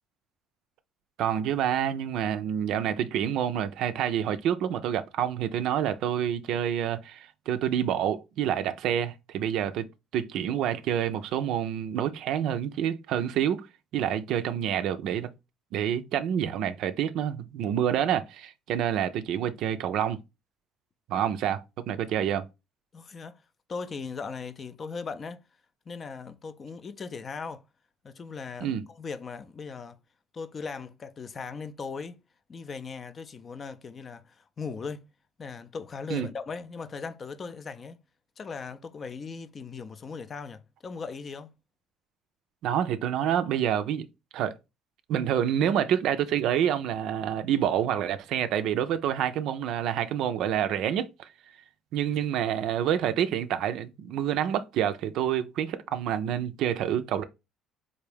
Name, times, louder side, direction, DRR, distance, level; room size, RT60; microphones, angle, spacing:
voice 1, 1.2-9.9 10.1-13.7 13.9-15.3 15.7-20.2 21.1-22.4 28.6-28.8 36.1-36.3 42.6-44.1 44.3-44.6 45.1-51.3 51.9-57.2, right 9 dB, 70° right, 0.4 m, -28 dB
voice 2, 22.9-23.4 23.7-25.4 25.9-27.6 28.0-30.0 30.3-32.2 32.5-35.1 35.4-38.0 38.4-41.5, left 5 dB, 40° left, 0.4 m, -38 dB
3.5 x 2.5 x 3.3 m
hypercardioid pair, 70°, 0 cm